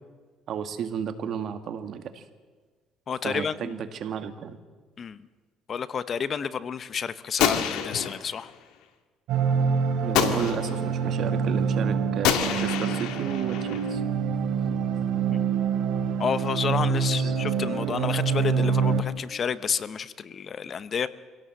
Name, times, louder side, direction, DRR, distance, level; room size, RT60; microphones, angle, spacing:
voice 1, 0.5-2.3 3.2-4.6 10.0-14.0 16.9-17.4, right 8 dB, 55° right, 9 dB, 1.9 m, -33 dB
voice 2, 3.1-3.8 5.0-5.2 5.7-8.5 15.3-15.4 16.2-21.1, left 7 dB, 40° left, 15 dB, 0.9 m, -30 dB
Gunshot gunfire, 7.4-8.5 10.1-11.0 12.2-14.0, left 9 dB, 85° left, 2.1 m, -27 dB
sound 1, 9.3-19.0, right 6 dB, 80° right, 3.1 m, -26 dB
26.0 x 17.5 x 7.8 m, 1.4 s
cardioid pair, 115°, 0 cm